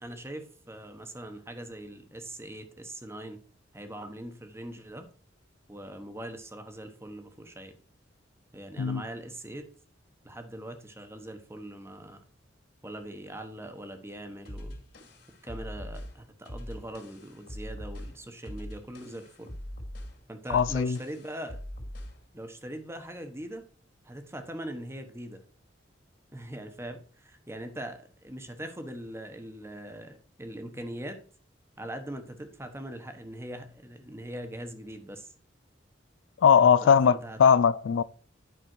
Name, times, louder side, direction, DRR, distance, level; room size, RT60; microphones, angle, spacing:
voice 1, 0.0-3.4 3.7-5.1 5.7-7.7 8.5-9.7 10.2-12.2 12.8-14.8 15.4-19.5 20.3-21.6 22.3-23.7 24.0-25.4 26.3-31.2 31.8-35.3 36.8-37.4, right 1 dB, 15° right, 1.1 m, -41 dB
sound 1, 14.5-22.3, equal, 60° left, 2.5 m, -42 dB
voice 2, 20.5-21.0 36.4-38.0, left 7 dB, 85° left, 0.4 m, -20 dB
9.3 x 5.2 x 4.5 m
head